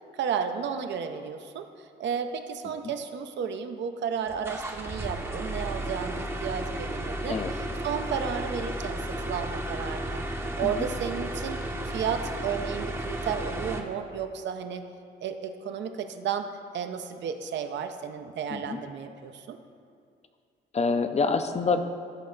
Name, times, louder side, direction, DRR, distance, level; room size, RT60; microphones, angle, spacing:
voice 1, 0.1-10.2 10.6-11.6 11.9-14.8 15.2-16.5 16.7-19.6, right 7 dB, 65° right, 7 dB, 0.6 m, -33 dB
sound 1, 4.3-13.8, right 1 dB, 10° right, 0.7 m, -33 dB
voice 2, 20.7-21.8, left 4 dB, 35° left, 8 dB, 0.5 m, -26 dB
11.5 x 4.2 x 3.9 m, 2.2 s
cardioid pair, 90°, 20 cm